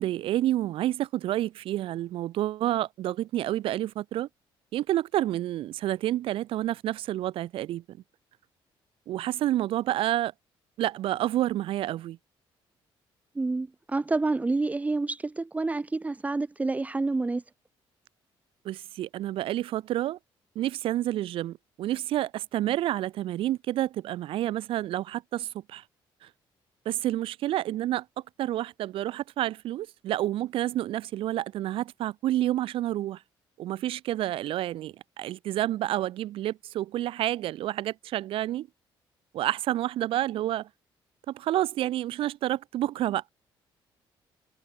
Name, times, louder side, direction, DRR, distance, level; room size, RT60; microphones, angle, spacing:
voice 1, 0.0-4.3 4.7-8.0 9.1-10.3 10.8-12.2 18.7-20.2 20.6-25.8 26.9-28.0 28.4-33.2 33.6-38.7 39.3-40.7 41.3-43.2, right 13 dB, 75° right, 1.8 m, -29 dB
voice 2, 13.4-17.4, right 3 dB, 15° right, 1.3 m, -28 dB
cardioid pair, 130°, 9 cm